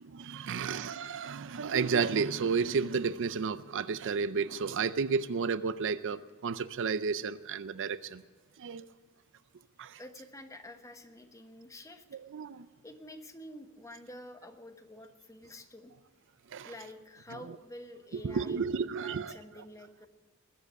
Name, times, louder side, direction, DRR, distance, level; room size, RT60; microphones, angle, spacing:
voice 1, 0.0-8.2 8.6-8.9 9.8-10.0 12.1-12.7 16.5-16.7 18.2-19.4, right 5 dB, 60° right, 0.5 m, -32 dB
voice 2, 10.0-12.0 12.8-15.9 16.6-20.1, left 1 dB, 15° left, 1.2 m, -49 dB
20.5 x 7.7 x 8.1 m
head